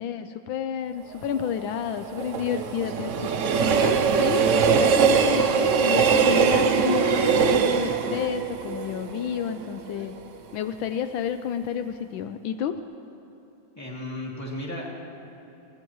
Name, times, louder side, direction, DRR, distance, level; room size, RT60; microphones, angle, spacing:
voice 1, 0.0-10.1 10.5-12.7, left 8 dB, 80° left, 9 dB, 1.3 m, -30 dB
Train, 1.1-10.2 10.6-10.7, right 6 dB, 75° right, 0.7 m, -22 dB
voice 2, 13.8-14.9, left 1 dB, 10° left, -4 dB, 2.4 m, -34 dB
22.5 x 18.0 x 3.1 m, 3.0 s
omnidirectional pair, 2.2 m